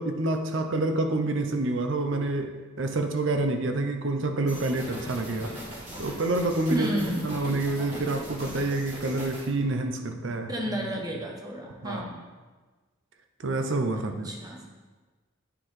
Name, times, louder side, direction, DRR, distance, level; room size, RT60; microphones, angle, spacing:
voice 1, 0.0-5.5 6.0-10.5 11.8-12.0 13.4-14.3, right 2 dB, 65° right, 6 dB, 0.6 m, -28 dB
sound 1, 4.5-9.5, equal, 35° right, 2.1 m, -40 dB
voice 2, 6.7-7.3 10.5-12.2 13.9-14.7, right 1 dB, 15° right, 0 dB, 0.8 m, -32 dB
9.5 x 3.9 x 3.2 m, 1.3 s
head